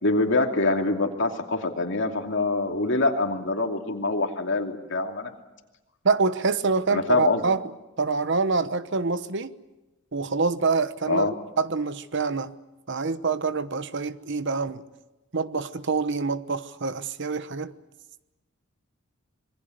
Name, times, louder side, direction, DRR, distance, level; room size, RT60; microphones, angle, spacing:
voice 1, 0.0-5.3 6.9-7.4 11.1-11.3, left 3 dB, 60° left, 2.7 m, -25 dB
voice 2, 6.0-7.6 8.0-9.5 10.1-11.3 11.6-12.5 12.9-14.8 15.3-17.7, right 4 dB, 60° right, 1.0 m, -26 dB
26.5 x 21.5 x 8.0 m
head